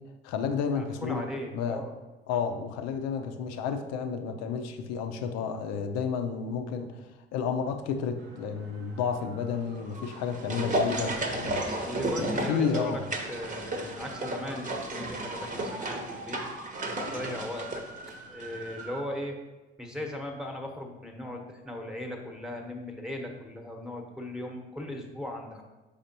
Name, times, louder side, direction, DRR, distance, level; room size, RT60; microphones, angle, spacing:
voice 1, 0.2-1.2 1.5-1.8 2.3-11.6 12.2-13.0, left 6 dB, 60° left, 7 dB, 0.7 m, -31 dB
voice 2, 0.7-1.9 2.3-2.4 11.8-13.0 13.3-16.4 17.0-17.8 18.3-19.4 19.8-25.6, left 1 dB, ahead, 1 dB, 1.1 m, -38 dB
sound 1, 8.2-19.0, right 3 dB, 75° right, 0.7 m, -46 dB
sound 2, 9.9-18.5 18.8-18.9, right 1 dB, 25° right, 0.9 m, -33 dB
6.9 x 5.0 x 2.9 m, 1.2 s
figure-of-eight pair, 50°, 30 cm